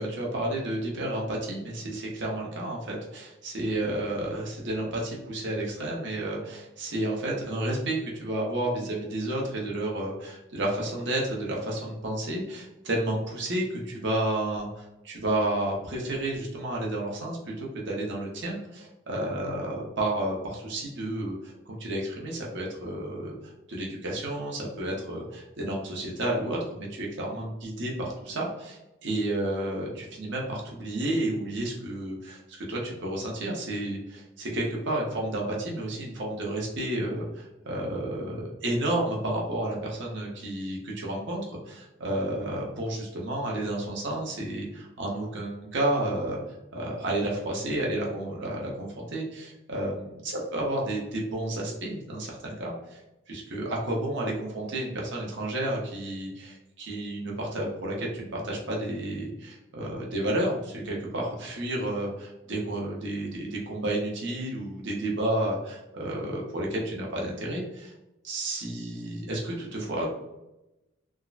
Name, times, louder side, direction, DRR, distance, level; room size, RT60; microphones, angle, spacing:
voice 1, 0.0-23.3 23.7-46.4 46.7-53.0 53.3-67.9 68.2-70.1, right 1 dB, 60° right, -2 dB, 0.8 m, -31 dB
3.5 x 2.1 x 2.5 m, 0.94 s
head